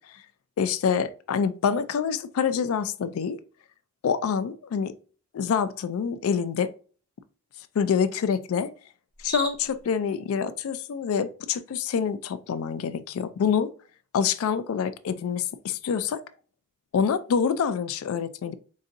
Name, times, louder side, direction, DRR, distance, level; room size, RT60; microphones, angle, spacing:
voice 1, 0.6-3.4 4.0-4.9 5.3-6.7 7.8-8.7 9.2-13.7 14.1-16.2 16.9-18.6, left 6 dB, 80° left, 0.3 m, -26 dB
Cricket, 9.1-9.9, right 3 dB, 5° right, 0.6 m, -36 dB
3.9 x 2.6 x 2.5 m
head